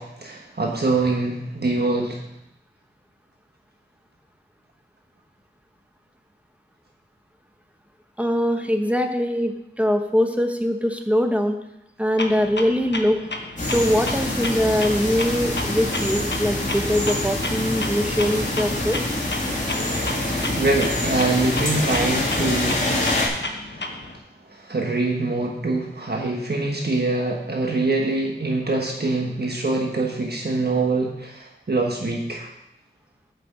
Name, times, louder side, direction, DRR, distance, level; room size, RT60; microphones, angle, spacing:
voice 1, 0.0-2.2 20.6-22.8 23.3-23.8 24.5-32.5, right 2 dB, 55° right, 0 dB, 1.3 m, -24 dB
voice 2, 8.2-11.6 12.0-13.2 13.6-19.0, equal, 5° right, 5 dB, 1.1 m, -22 dB
Clock, 12.2-24.2, left 2 dB, 65° left, 1.2 m, -33 dB
sound 1, 13.6-23.3, left 1 dB, 40° left, 2.6 m, -25 dB
7.9 x 6.1 x 7.2 m, 0.84 s
wide cardioid pair, 55°, 19 cm